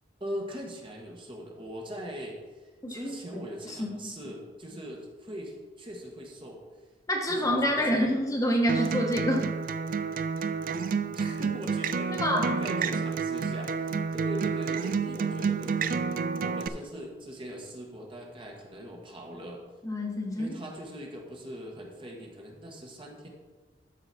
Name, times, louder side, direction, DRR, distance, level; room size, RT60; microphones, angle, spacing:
voice 1, 0.2-2.6 2.9-6.6 7.3-8.2 11.1-16.0 16.4-19.6 20.4-23.3, equal, 30° right, 0 dB, 1.4 m, -41 dB
voice 2, 2.8-4.1 7.1-9.5 12.1-12.6 19.8-20.5, equal, 20° left, 0 dB, 1.2 m, -28 dB
Acoustic guitar, 8.7-16.7, right 5 dB, 55° right, 0.4 m, -29 dB
13.0 x 4.9 x 4.3 m, 1.3 s
head